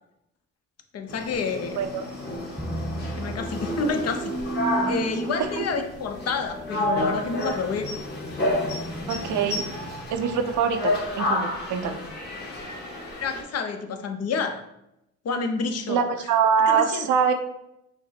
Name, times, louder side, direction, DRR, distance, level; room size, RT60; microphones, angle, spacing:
voice 1, 0.9-1.8 3.2-4.3 4.8-7.9 9.4-9.6 13.2-14.6 15.2-16.0 16.7-17.1, left 4 dB, 55° left, 6 dB, 0.7 m, -29 dB
sound 1, 1.1-13.4, left 1 dB, 35° left, 1.4 m, -31 dB
sound 2, 2.6-11.3, right 2 dB, 5° right, 0.5 m, -35 dB
voice 2, 9.1-9.6 10.1-12.0 15.9-17.3, right 7 dB, 80° right, 7 dB, 0.6 m, -24 dB
5.9 x 2.0 x 4.2 m, 0.84 s
cardioid pair, 90°, 30 cm